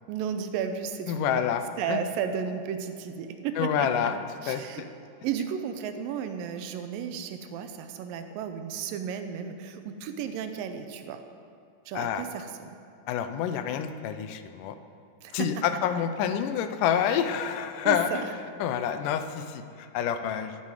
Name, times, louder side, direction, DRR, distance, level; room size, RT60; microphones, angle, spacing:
voice 1, 0.1-1.4 1.8-4.1 4.4-4.8 5.2-11.2 11.9-12.7 15.2-15.5 17.9-18.3, right 7 dB, 85° right, 8 dB, 2.4 m, -33 dB
voice 2, 1.1-2.1 3.6-4.2 4.5-4.9 11.9-12.3 13.1-14.8 15.3-18.2 18.6-20.6, left 8 dB, 80° left, 9 dB, 2.1 m, -28 dB
13.0 x 8.4 x 4.8 m, 2.6 s
omnidirectional pair, 3.9 m